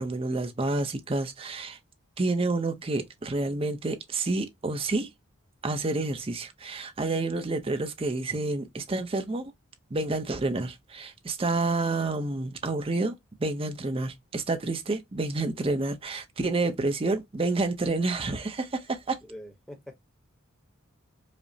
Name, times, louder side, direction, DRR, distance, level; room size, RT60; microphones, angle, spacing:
voice 1, 0.0-1.8 2.2-5.1 5.6-9.5 9.9-19.2, right 2 dB, 25° right, 0.5 m, -29 dB
voice 2, 19.2-19.9, equal, ahead, 0.8 m, -44 dB
4.9 x 2.0 x 2.6 m
head